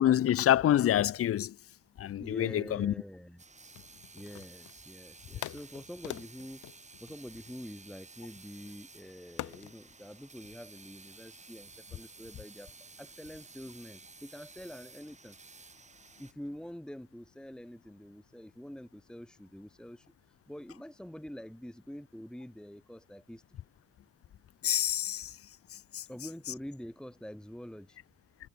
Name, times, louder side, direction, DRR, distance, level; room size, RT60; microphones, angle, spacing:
voice 1, 0.0-1.6 2.0-2.9 24.6-25.4 25.7-26.1, left 11 dB, 50° left, 0.6 m, -27 dB
voice 2, 2.2-3.8 4.1-6.7 7.0-15.4 16.2-23.6 26.1-28.0, equal, 5° left, 1.9 m, -46 dB
sound 1, 3.4-16.3, right 4 dB, 25° right, 1.7 m, -54 dB
sound 2, 3.7-4.9 5.4-7.9 9.4-9.8, left 14 dB, 80° left, 1.3 m, -44 dB
cardioid pair, 90°, 30 cm